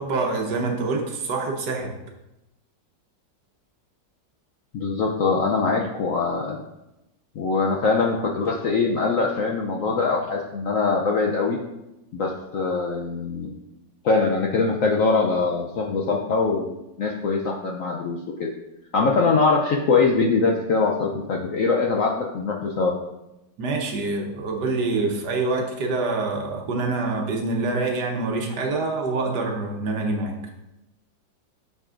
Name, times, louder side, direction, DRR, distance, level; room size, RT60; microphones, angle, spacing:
voice 1, 0.0-2.0 23.6-30.3, right 3 dB, 65° right, 1 dB, 1.4 m, -26 dB
voice 2, 4.7-6.6 7.4-11.6 12.1-13.5 14.0-18.5 18.9-22.9, left 4 dB, 65° left, 0 dB, 0.8 m, -23 dB
8.1 x 6.4 x 2.5 m, 0.93 s
omnidirectional pair, 2.0 m